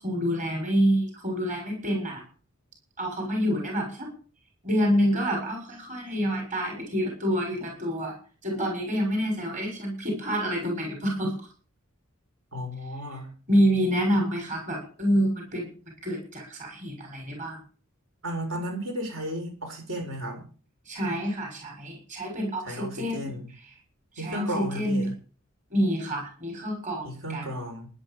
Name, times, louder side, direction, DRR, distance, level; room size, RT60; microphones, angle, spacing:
voice 1, 0.0-2.2 3.0-4.1 4.6-8.2 8.4-11.5 13.1-13.2 13.5-15.7 16.0-17.6 20.9-23.3 24.1-25.1 25.7-27.5, equal, 35° right, 2 dB, 7.0 m, -27 dB
voice 2, 12.5-13.3 18.2-20.5 22.7-23.5 24.2-25.1 27.0-27.9, equal, 70° right, 2 dB, 7.4 m, -34 dB
13.0 x 11.5 x 7.2 m, 0.39 s
head